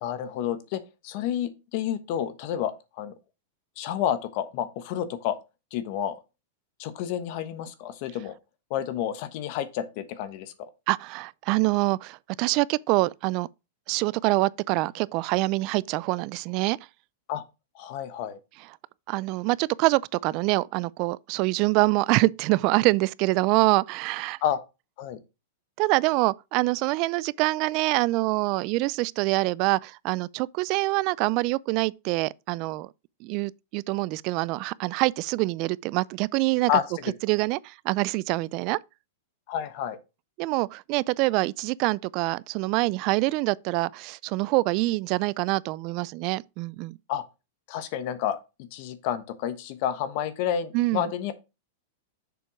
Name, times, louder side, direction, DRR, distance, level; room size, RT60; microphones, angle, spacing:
voice 1, 0.0-2.7 3.0-3.1 3.8-5.4 5.7-6.1 6.8-8.3 8.7-10.7 17.3-17.4 17.7-18.4 24.4-24.6 25.0-25.2 36.7-36.8 39.5-40.0 47.1-47.2 47.7-51.3, left 10 dB, 50° left, 1.2 m, -30 dB
voice 2, 10.9-13.5 13.9-16.8 19.1-24.4 25.8-32.9 33.2-36.7 37.2-38.8 40.4-47.0 50.7-51.1, right 22 dB, 45° right, 0.3 m, -25 dB
6.9 x 4.5 x 4.9 m
supercardioid pair, 140°, 0 cm